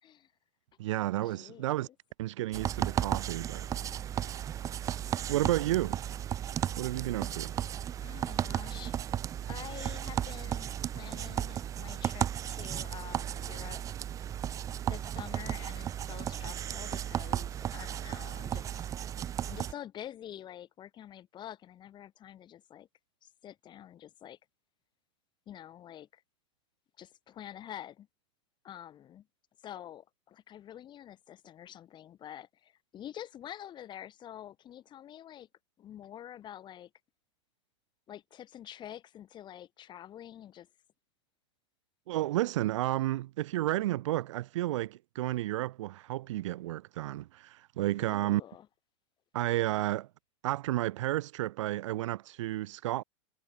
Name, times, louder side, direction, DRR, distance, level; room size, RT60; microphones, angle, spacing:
voice 1, 0.0-0.3 1.2-1.9 3.8-4.3 8.0-8.9 9.5-13.8 14.9-18.9 19.5-22.9 23.2-24.4 25.5-26.2 27.0-28.1 28.6-29.3 29.6-35.5 35.8-36.9 38.1-40.7 48.0-48.7, left 11 dB, 30° left, 3.0 m, -47 dB
voice 2, 0.8-1.9 2.2-3.7 5.3-6.0 6.8-7.5 42.1-48.4 49.3-50.1 50.4-53.0, right 15 dB, 75° right, 0.8 m, -31 dB
sound 1, 2.5-19.7, right 10 dB, 20° right, 0.4 m, -35 dB
supercardioid pair, 135°, 16 cm